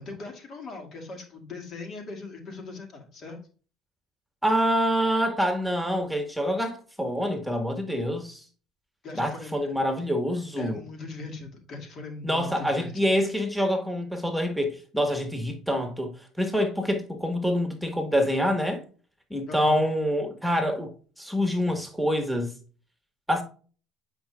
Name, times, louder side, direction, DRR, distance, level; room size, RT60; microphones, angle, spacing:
voice 1, 0.0-3.4 9.0-9.6 10.6-13.1 19.5-19.8, left 3 dB, 55° left, 2.2 m, -40 dB
voice 2, 4.4-8.4 9.2-10.8 12.2-18.8 19.3-20.9 21.2-22.5 23.3-23.4, equal, ahead, 1.5 m, -26 dB
8.5 x 5.2 x 2.4 m
supercardioid pair, 85°, 0 cm